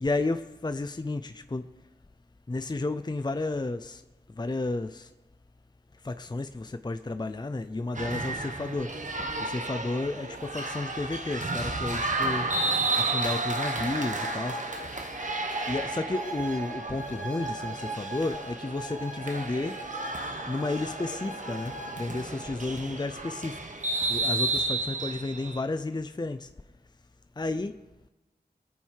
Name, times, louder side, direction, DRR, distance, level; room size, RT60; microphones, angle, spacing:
voice 1, 0.0-1.7 2.5-4.0 4.4-5.1 6.0-8.9 9.4-12.5 13.0-14.6 15.7-19.8 20.5-23.6 24.1-26.5 27.4-27.7, left 2 dB, 25° left, 10 dB, 0.6 m, -32 dB
sound 1, 7.9-25.6, right 2 dB, 45° right, 1.5 m, -32 dB
22.5 x 9.4 x 4.6 m, 1.1 s
wide cardioid pair, 60°, 17 cm